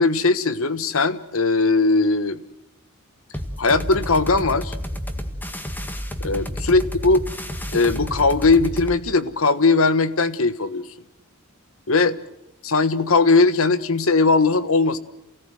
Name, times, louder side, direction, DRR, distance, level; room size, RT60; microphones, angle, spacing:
voice 1, 0.0-2.4 3.6-4.7 6.2-7.2 7.7-10.8 11.9-12.2 12.6-15.0, left 3 dB, 70° left, 14 dB, 1.3 m, -19 dB
sound 1, 3.3-9.0, equal, 10° left, 1.8 m, -30 dB
28.5 x 18.0 x 7.7 m, 0.82 s
head